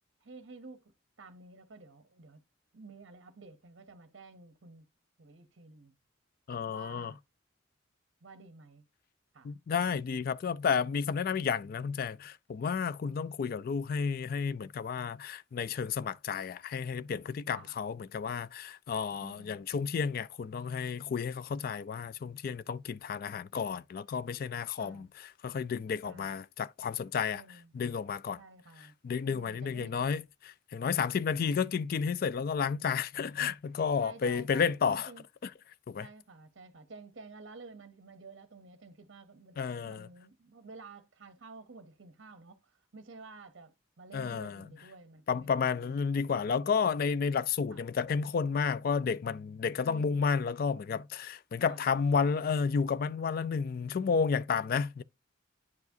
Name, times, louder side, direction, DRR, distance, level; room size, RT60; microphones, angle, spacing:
voice 1, 0.2-0.8 1.2-2.4 2.7-4.8 5.2-5.9 6.7-7.2 8.2-8.8 9.3-9.5 13.0-13.4 17.5-17.7 19.2-19.6 24.8-25.1 26.0-26.3 27.3-27.7 28.4-28.9 29.3-30.2 30.8-31.2 34.0-35.2 36.0-46.0 47.7-47.9 49.8-50.3 51.7-51.8, right 3 dB, 60° right, 0.7 m, -52 dB
voice 2, 6.5-7.1 9.4-25.1 25.4-27.4 27.7-28.4 29.0-35.1 35.9-36.1 39.6-40.1 44.1-44.7 45.3-55.0, left 6 dB, 50° left, 0.3 m, -31 dB
9.6 x 4.7 x 2.6 m
head